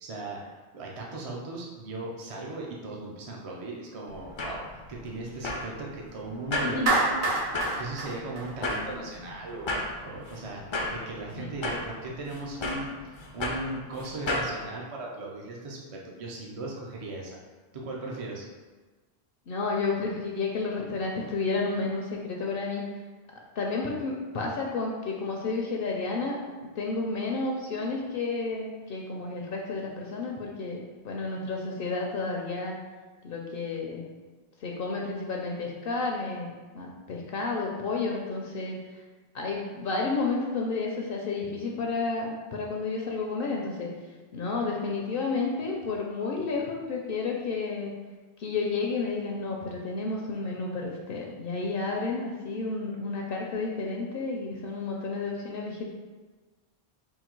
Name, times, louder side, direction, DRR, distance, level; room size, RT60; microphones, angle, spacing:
voice 1, 0.0-4.6 4.9-17.4 17.7-18.5, right 2 dB, 45° right, -2 dB, 0.5 m, -38 dB
sound 1, 4.1-14.5, left 2 dB, 45° left, 0.3 m, -35 dB
Clapping, 6.9-9.2, right 2 dB, 75° right, 0.9 m, -27 dB
voice 2, 19.5-22.8 23.6-26.4 26.8-32.8 33.2-34.0 34.6-38.8 39.3-43.9 44.3-47.9 48.4-55.9, left 3 dB, 65° left, 0 dB, 0.7 m, -31 dB
3.8 x 2.3 x 4.4 m, 1.3 s
omnidirectional pair, 1.1 m